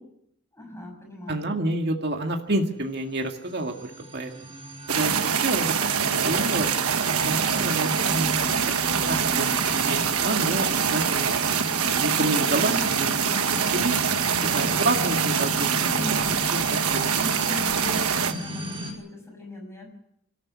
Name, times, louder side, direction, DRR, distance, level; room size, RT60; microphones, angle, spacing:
voice 1, 0.5-1.5 15.9-16.6 17.1-19.9, equal, 10° left, 2 dB, 6.4 m, -39 dB
voice 2, 1.3-4.3 4.9-5.7 6.2-8.3 8.7-8.8 9.0-11.4 12.0-14.0 14.4-16.2 16.5-17.1, right 2 dB, 50° right, 3 dB, 2.0 m, -29 dB
sound 1, 3.2-18.9, equal, 25° right, 5.1 m, -34 dB
sound 2, 4.9-18.3, right 7 dB, 90° right, 1.3 m, -24 dB
24.5 x 14.0 x 8.5 m, 0.77 s
head